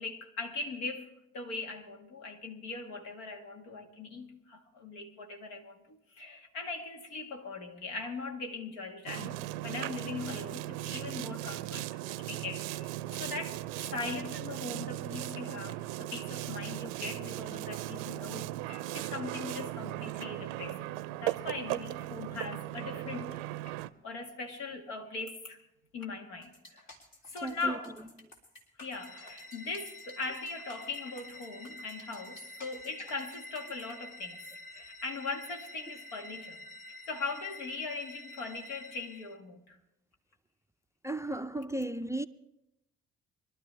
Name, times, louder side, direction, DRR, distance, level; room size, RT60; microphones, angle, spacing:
voice 1, 0.0-23.4 23.8-25.6 25.9-26.9 27.3-27.9 28.8-34.4 34.7-39.8, left 3 dB, 75° left, 1.7 m, -40 dB
Boat Water vehicle, 9.1-23.9, right 16 dB, 80° right, 0.5 m, -38 dB
sound 1, 26.4-33.9, left 1 dB, 60° left, 3.4 m, -54 dB
voice 2, 27.4-27.8 41.0-42.3, right 2 dB, 10° right, 0.4 m, -34 dB
sound 2, 28.8-39.4, left 1 dB, 20° left, 1.6 m, -49 dB
24.5 x 12.0 x 3.3 m
hypercardioid pair, 50°, 34 cm